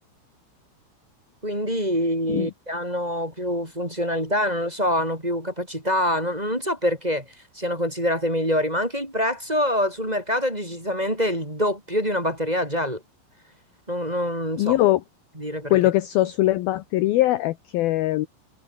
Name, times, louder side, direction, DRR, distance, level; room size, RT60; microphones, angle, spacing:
voice 1, 1.4-7.2 7.5-13.0 13.9-14.8 15.4-15.8, equal, 10° right, 3.6 m, -25 dB
voice 2, 14.6-15.0 15.7-18.3, left 16 dB, 80° left, 2.2 m, -21 dB
omnidirectional pair, 5.5 m